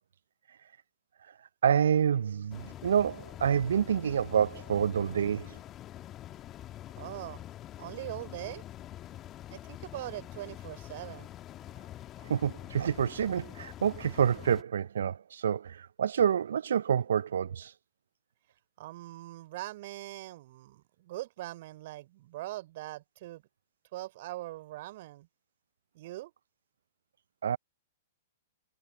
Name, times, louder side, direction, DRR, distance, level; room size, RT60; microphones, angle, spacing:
voice 1, 1.6-5.6 12.2-17.8 27.4-27.6, right 8 dB, 70° right, 0.5 m, -28 dB
sound 1, 2.5-14.6, left 12 dB, 30° left, 1.7 m, -46 dB
voice 2, 7.0-7.5 7.8-8.6 9.5-11.3 18.8-23.4 23.9-25.3 25.9-26.3, right 16 dB, 50° right, 4.6 m, -41 dB
figure-of-eight pair, 110°, 0 cm